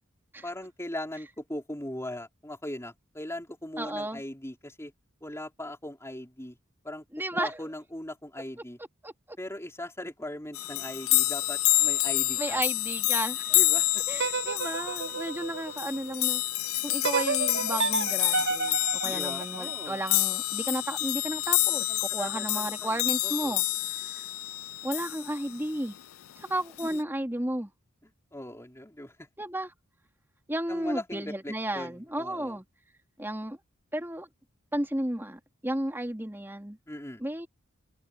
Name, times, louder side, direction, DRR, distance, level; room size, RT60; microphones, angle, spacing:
voice 1, 0.4-4.9 5.2-6.6 6.8-7.0 7.3-8.8 9.4-12.6 13.5-14.0 19.0-20.0 21.6-23.6 26.8-27.0 28.3-29.1 30.7-32.6 36.9-37.2, left 1 dB, 15° left, 5.1 m, -39 dB
voice 2, 3.8-4.2 7.1-7.6 9.0-9.4 12.4-13.6 14.1-16.4 16.8-23.6 23.9-24.2 24.8-25.9 26.4-27.7 29.4-29.7 30.5-32.6 33.2-33.6 33.9-34.3 34.7-36.8 37.2-37.5, right 1 dB, 10° right, 2.5 m, -33 dB
sound 1, 10.5-25.6 26.8-27.0, left 18 dB, 80° left, 0.4 m, -28 dB
sound 2, 14.1-16.3 17.0-20.2, right 4 dB, 55° right, 1.0 m, -31 dB
head